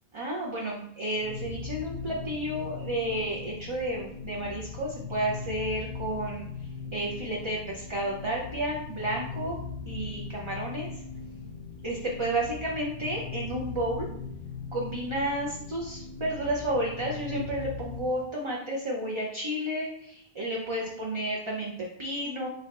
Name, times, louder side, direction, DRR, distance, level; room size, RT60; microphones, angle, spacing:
voice 1, 0.1-6.5 6.9-9.6 9.8-11.0 11.8-14.1 14.7-22.5, right 1 dB, 35° right, -3 dB, 0.5 m, -31 dB
sound 1, 1.1-18.2, left 5 dB, 65° left, 0.7 m, -39 dB
4.0 x 2.3 x 4.1 m, 0.72 s
omnidirectional pair, 1.1 m